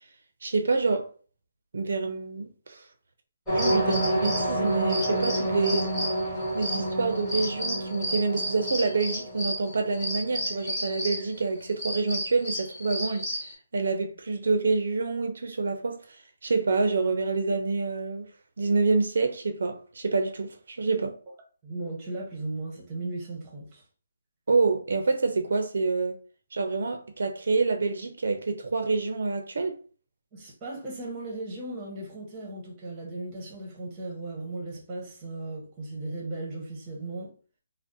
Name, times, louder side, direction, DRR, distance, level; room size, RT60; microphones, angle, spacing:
voice 1, 0.4-1.1 1.7-2.8 3.5-5.9 6.5-13.2 13.7-16.0 16.4-18.2 18.6-21.1 24.5-26.2 26.5-29.8, right 3 dB, 70° right, 0.5 m, -27 dB
sound 1, 3.5-11.3 11.6-13.5, right 1 dB, 5° left, 1.1 m, -29 dB
voice 2, 21.6-23.8 30.3-37.3, right 2 dB, 15° right, 0.8 m, -36 dB
2.6 x 2.0 x 3.7 m
hypercardioid pair, 170°, 0 cm